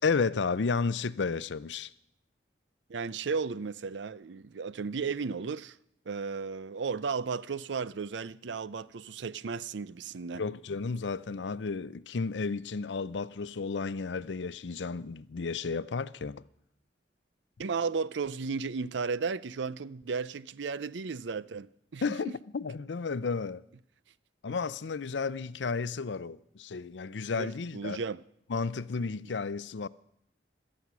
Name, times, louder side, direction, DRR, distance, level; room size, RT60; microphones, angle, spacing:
voice 1, 0.0-1.9 10.3-16.4 22.0-23.6 24.4-28.0 28.5-29.9, left 4 dB, 80° left, 0.6 m, -32 dB
voice 2, 2.9-5.8 6.1-10.4 17.6-22.4 27.3-28.2, right 5 dB, 90° right, 0.5 m, -34 dB
17.5 x 13.0 x 6.1 m
head